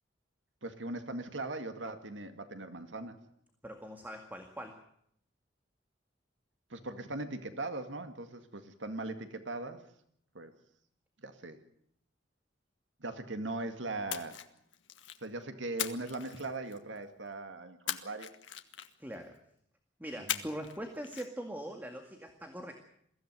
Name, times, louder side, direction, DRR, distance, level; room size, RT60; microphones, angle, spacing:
voice 1, 0.6-3.2 6.7-9.8 10.3-10.5 11.2-11.6 13.0-14.5 15.2-18.3 20.3-20.4, right 2 dB, 85° right, 8 dB, 2.1 m, -39 dB
voice 2, 3.6-4.8 19.0-19.4 20.0-22.7, equal, 10° right, 4 dB, 2.0 m, -42 dB
Splash splatter, 14.1-15.3 15.8-17.0 17.9-19.1 20.3-20.8 21.0-21.3, left 11 dB, 85° left, 1.5 m, -39 dB
22.5 x 15.5 x 9.5 m, 0.70 s
head